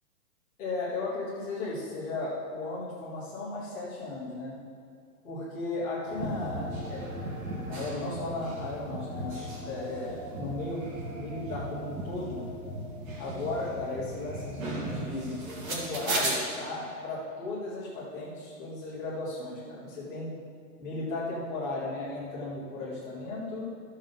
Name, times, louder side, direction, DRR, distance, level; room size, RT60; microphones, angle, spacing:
voice 1, 0.6-4.6 5.2-7.1 7.7-10.8 11.1-12.5 13.2-15.4 15.7-20.3 20.8-23.7, left 2 dB, 5° left, -11 dB, 0.6 m, -35 dB
sound 1, 6.1-16.3, right 1 dB, 60° right, 2.1 m, -36 dB
13.5 x 6.4 x 3.8 m, 2.3 s
hypercardioid pair, 175°, 48 cm